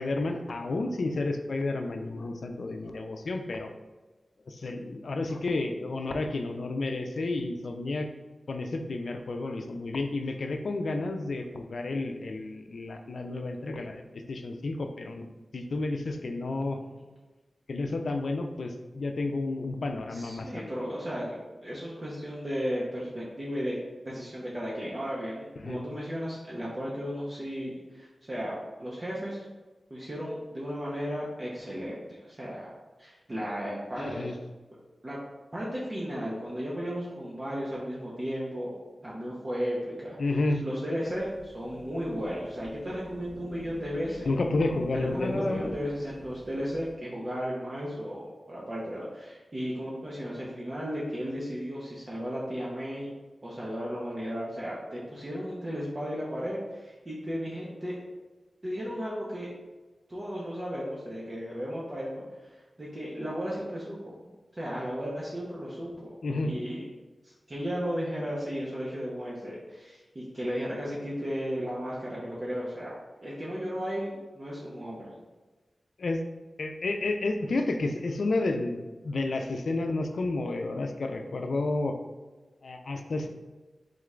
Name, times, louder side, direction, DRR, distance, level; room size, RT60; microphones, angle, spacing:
voice 1, 0.0-3.7 4.5-8.1 8.5-15.3 15.5-16.8 17.7-20.7 25.6-25.8 34.0-34.4 40.2-40.6 44.3-45.6 66.2-66.5 76.0-76.2 76.6-82.0 82.6-83.3, left 2 dB, 80° left, 5 dB, 0.4 m, -31 dB
voice 2, 20.1-21.3 21.6-23.8 24.0-29.4 29.9-32.7 33.0-34.3 35.0-35.2 35.5-38.7 39.0-40.2 40.6-44.3 45.1-53.1 53.4-58.0 58.6-59.5 60.1-62.5 62.8-66.1 66.4-66.8 67.2-72.9 73.2-75.0, equal, 40° right, -6 dB, 1.0 m, -35 dB
sound 1, 41.1-46.9, left 1 dB, 30° left, 0.6 m, -39 dB
3.8 x 3.7 x 3.3 m, 1.2 s
cardioid pair, 50°, 0 cm